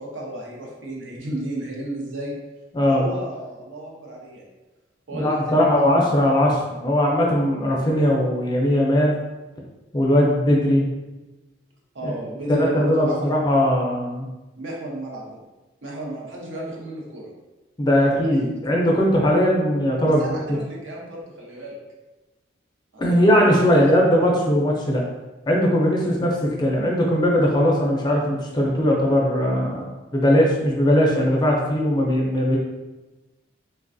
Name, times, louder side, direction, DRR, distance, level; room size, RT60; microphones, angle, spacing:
voice 1, 0.0-2.3 2.9-4.4 5.1-5.9 11.9-13.3 14.6-15.4 15.8-17.3 18.0-18.5 20.0-21.8 22.9-23.8, right 1 dB, 80° right, -3 dB, 0.7 m, -32 dB
voice 2, 2.7-3.1 5.1-9.1 9.9-10.9 12.0-12.1 12.5-14.3 17.8-20.2 23.0-25.0 25.5-29.9 30.1-32.6, equal, 20° left, -2 dB, 0.4 m, -19 dB
3.2 x 2.3 x 2.5 m, 1.1 s
head